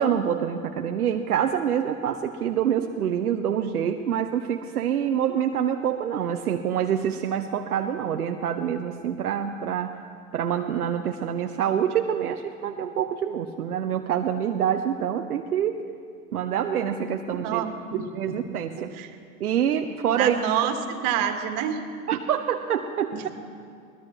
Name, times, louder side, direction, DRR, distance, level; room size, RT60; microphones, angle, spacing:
voice 1, 0.0-10.0 10.3-15.8 16.3-17.6 18.1-18.9 19.4-20.4 22.1-23.3, right 9 dB, 80° right, 5 dB, 0.8 m, -26 dB
voice 2, 17.4-18.4 18.8-19.1 20.1-21.8 23.1-23.3, right 9 dB, 50° right, 6 dB, 1.8 m, -28 dB
22.0 x 19.0 x 3.2 m, 2.3 s
figure-of-eight pair, 75°, 44 cm